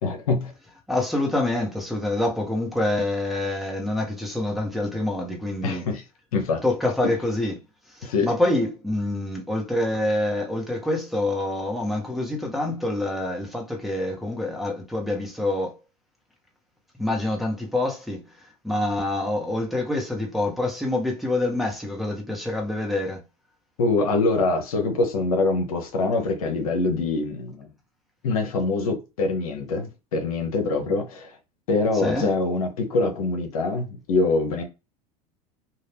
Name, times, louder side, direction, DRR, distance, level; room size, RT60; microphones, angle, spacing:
voice 1, 0.0-0.5 5.6-6.0 6.3-6.6 8.0-8.4 23.8-27.7 28.2-31.3 31.7-34.6, left 3 dB, 80° left, 0.9 m, -24 dB
voice 2, 0.9-5.9 6.6-7.5 7.9-15.8 17.0-18.2 18.6-23.2 32.0-32.3, left 1 dB, ahead, 1.0 m, -26 dB
2.7 x 2.4 x 3.3 m
hypercardioid pair, 90°, 18 cm